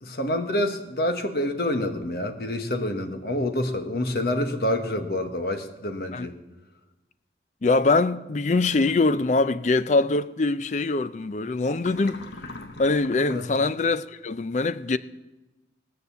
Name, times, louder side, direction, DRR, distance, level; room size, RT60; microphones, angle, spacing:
voice 1, 0.0-6.4 13.3-13.4, left 1 dB, 60° left, 1.2 m, -27 dB
voice 2, 7.6-12.3 12.8-15.0, left 3 dB, 40° left, 0.4 m, -23 dB
sound 1, 8.7-9.2 11.8-13.6, left 2 dB, 75° left, 1.0 m, -41 dB
19.0 x 6.7 x 6.9 m
head